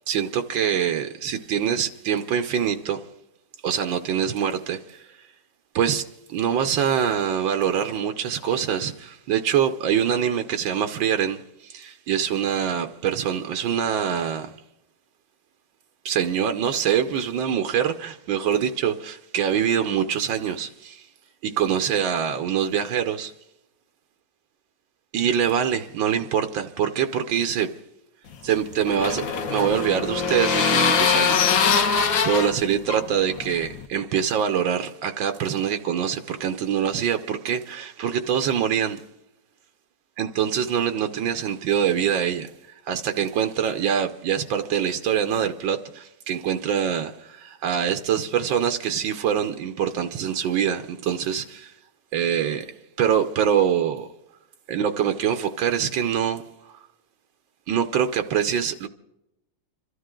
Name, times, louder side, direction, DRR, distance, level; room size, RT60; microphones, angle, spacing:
voice 1, 0.1-3.0 3.6-5.1 5.7-6.0 6.3-14.5 16.0-21.0 21.4-23.3 25.1-27.7 28.4-29.2 29.5-39.0 40.2-42.5 42.9-51.7 52.1-52.7 53.0-54.1 54.7-56.4 57.7-58.9, right 8 dB, 85° right, 1.6 m, -24 dB
sound 1, 28.3-33.9, left 6 dB, 85° left, 1.8 m, -23 dB
26.5 x 13.0 x 3.8 m
omnidirectional pair, 2.0 m